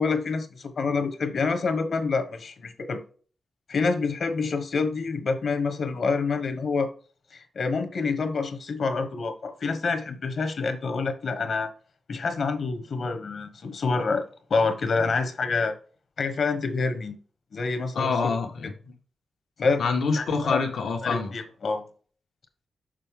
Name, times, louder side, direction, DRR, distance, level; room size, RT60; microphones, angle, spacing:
voice 1, 0.0-3.0 3.7-6.9 7.3-11.7 12.1-15.7 16.2-17.2 17.5-18.1 19.6-19.8 20.1-20.6 21.0-21.8, left 4 dB, 55° left, 8 dB, 1.3 m, -27 dB
voice 2, 17.9-18.9 19.8-21.3, left 4 dB, 85° left, 3 dB, 1.7 m, -26 dB
6.6 x 5.8 x 3.7 m, 0.41 s
wide cardioid pair, 155°, 0 cm